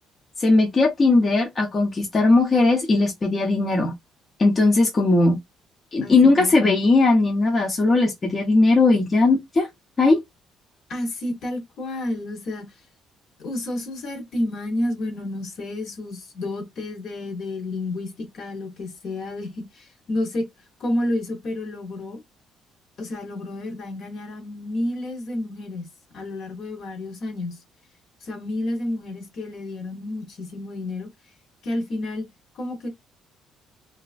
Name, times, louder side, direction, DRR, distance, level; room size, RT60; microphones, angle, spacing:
voice 1, 0.4-3.9 4.4-5.4 5.9-9.7 10.0-10.2, left 3 dB, 25° left, 0.4 m, -18 dB
voice 2, 6.0-6.8 10.9-12.6 13.4-20.4 20.8-22.2 23.0-25.8 26.1-27.6 28.2-31.1 31.6-32.3 32.6-32.9, left 1 dB, 50° left, 0.8 m, -30 dB
2.9 x 2.3 x 2.4 m
cardioid pair, 165°, 0 cm